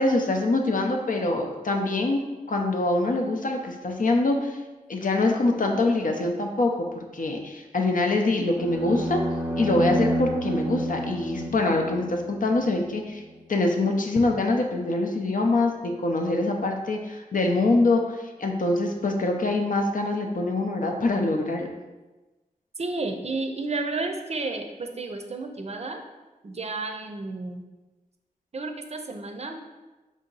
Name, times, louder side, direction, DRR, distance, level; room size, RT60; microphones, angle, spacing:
voice 1, 0.0-2.2 2.5-4.6 4.9-9.2 9.6-13.2 13.5-21.7, left 2 dB, 65° left, 3 dB, 0.6 m, -24 dB
sound 1, 8.5-12.8, right 1 dB, 10° right, 0.8 m, -29 dB
voice 2, 22.8-26.0 26.4-27.6 28.5-29.6, right 3 dB, 45° right, 5 dB, 0.5 m, -32 dB
4.9 x 2.7 x 3.9 m, 1.2 s
wide cardioid pair, 85°, 15 cm